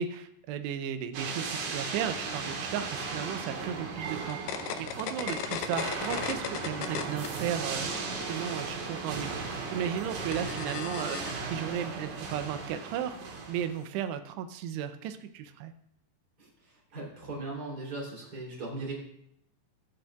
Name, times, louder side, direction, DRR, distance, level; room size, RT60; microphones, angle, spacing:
voice 1, 0.0-9.5 9.7-15.7, right 9 dB, 90° right, 9 dB, 2.8 m, -35 dB
sound 1, 1.1-13.8, right 4 dB, 60° right, 2.6 m, -36 dB
sound 2, 4.3-7.3 7.6-11.3, left 8 dB, 80° left, 2.6 m, -37 dB
voice 2, 16.4-18.9, right 2 dB, 25° right, -3 dB, 3.1 m, -39 dB
23.0 x 7.8 x 2.3 m, 0.76 s
omnidirectional pair, 4.8 m